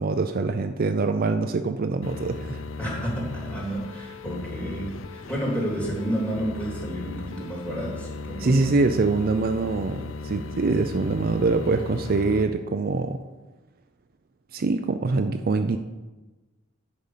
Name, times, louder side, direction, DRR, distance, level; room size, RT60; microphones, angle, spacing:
voice 1, 0.0-2.6 8.4-13.2 14.5-15.8, right 3 dB, 50° right, 7 dB, 0.5 m, -24 dB
sound 1, 2.0-12.4, left 4 dB, 80° left, 0.6 m, -37 dB
voice 2, 2.8-8.7, right 1 dB, 5° left, -4 dB, 3.2 m, -30 dB
10.5 x 5.4 x 7.3 m, 1.2 s
head